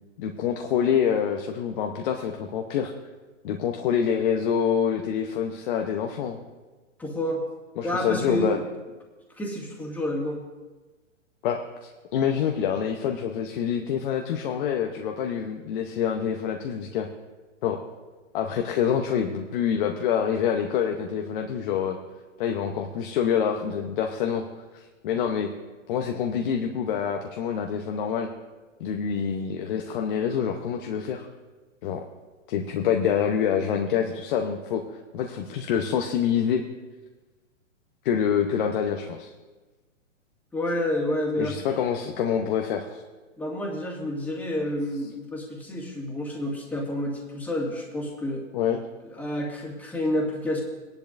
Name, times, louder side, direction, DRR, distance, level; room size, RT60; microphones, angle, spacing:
voice 1, 0.2-2.9 3.4-6.4 7.8-8.6 11.4-17.1 17.6-17.8 18.3-22.0 22.4-24.4 24.7-25.5 25.9-28.3 28.8-31.3 31.8-32.0 32.5-34.8 35.1-36.6 38.0-39.3 41.4-43.0 48.5-48.8, left 8 dB, 40° left, 3 dB, 0.9 m, -26 dB
voice 2, 7.0-7.4 7.8-8.6 9.4-10.4 40.5-41.7 43.4-48.4 49.1-50.6, left 1 dB, 5° left, -2 dB, 2.0 m, -29 dB
19.0 x 10.5 x 2.6 m, 1.3 s
hypercardioid pair, 135°, 39 cm